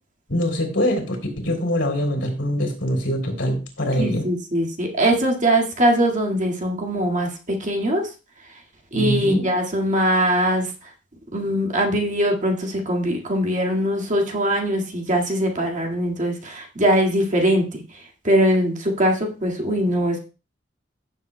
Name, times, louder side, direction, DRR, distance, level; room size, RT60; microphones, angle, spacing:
voice 1, 0.3-4.2 8.9-9.5, equal, 70° left, 3 dB, 3.3 m, -23 dB
voice 2, 4.0-8.0 8.9-10.9 11.3-17.8 18.2-20.2, right 1 dB, 40° right, 0 dB, 1.9 m, -21 dB
16.0 x 7.3 x 2.2 m, 0.32 s
head